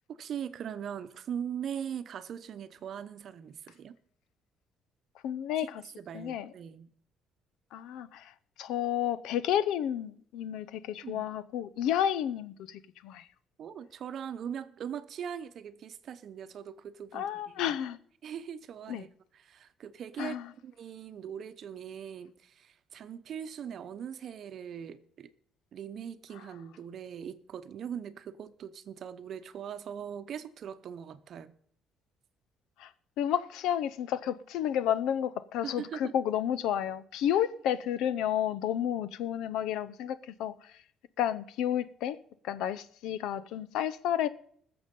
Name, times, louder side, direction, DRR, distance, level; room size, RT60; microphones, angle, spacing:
voice 1, 0.1-4.0 5.6-5.7 6.0-6.9 11.0-11.3 13.6-17.8 18.2-20.4 20.6-25.3 25.7-31.5 35.6-36.1, right 8 dB, 45° right, 0.8 m, -41 dB
voice 2, 5.2-5.8 6.1-6.5 7.7-8.2 8.6-13.2 17.1-18.0 18.9-19.0 20.2-20.4 32.8-32.9 33.2-40.5 41.2-42.2 42.4-44.3, left 10 dB, 80° left, 0.7 m, -31 dB
20.0 x 7.0 x 5.3 m
cardioid pair, 150°, 0 cm